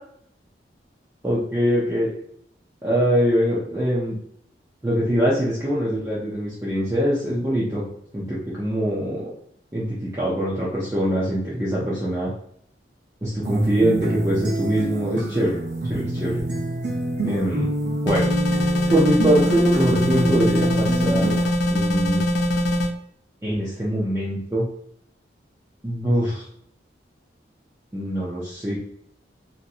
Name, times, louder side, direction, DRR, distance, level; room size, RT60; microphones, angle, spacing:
voice 1, 1.2-2.1 2.8-4.2 4.8-7.8 8.1-9.3 9.7-12.3 13.2-15.6 15.8-16.4 17.2-17.7 18.0-18.3 18.9-21.3 21.7-22.2 23.4-24.7 25.8-26.4 27.9-28.8, equal, 15° right, -7 dB, 0.6 m, -23 dB
sound 1, 13.5-21.5, right 1 dB, 70° right, 0.8 m, -26 dB
sound 2, 18.1-22.9, left 1 dB, 75° left, 0.4 m, -22 dB
2.9 x 2.7 x 2.5 m, 0.68 s
head